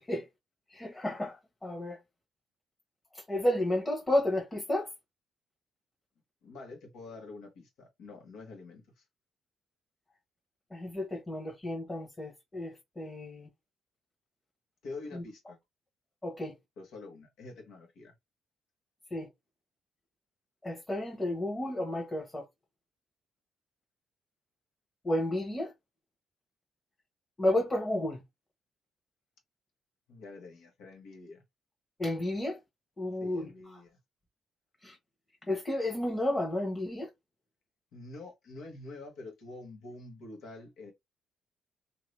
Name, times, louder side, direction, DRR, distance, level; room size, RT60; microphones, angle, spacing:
voice 1, 0.7-2.0 3.1-4.9 10.7-13.5 15.1-15.2 16.2-16.5 19.1-19.3 20.6-22.5 25.0-25.7 27.4-28.2 32.0-32.6 33.0-33.5 34.8-35.0 35.5-37.1, left 1 dB, 20° left, 1.2 m, -32 dB
voice 2, 6.4-9.0 14.8-15.6 16.8-18.1 30.1-31.4 33.2-34.0 37.9-40.9, left 3 dB, 80° left, 1.4 m, -46 dB
2.8 x 2.7 x 3.3 m
cardioid pair, 90°, 0 cm